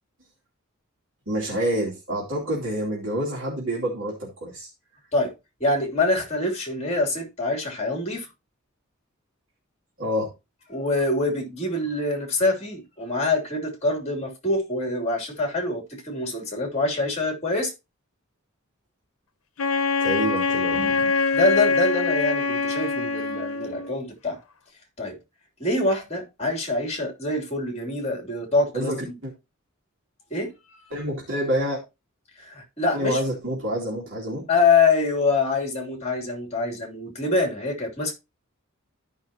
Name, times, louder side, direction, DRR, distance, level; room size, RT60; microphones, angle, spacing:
voice 1, 1.3-4.7 10.0-10.3 20.0-21.2 28.7-29.3 30.9-31.8 32.9-34.5, equal, 65° right, 2.8 m, -28 dB
voice 2, 5.6-8.3 10.7-17.7 21.3-24.4 25.0-25.2 25.6-29.1 30.3-30.9 32.4-33.2 34.5-38.1, left 3 dB, 30° left, 3.1 m, -25 dB
Wind instrument woodwind instrument, 19.6-24.0, left 4 dB, 80° left, 0.9 m, -24 dB
13.5 x 5.7 x 2.9 m
head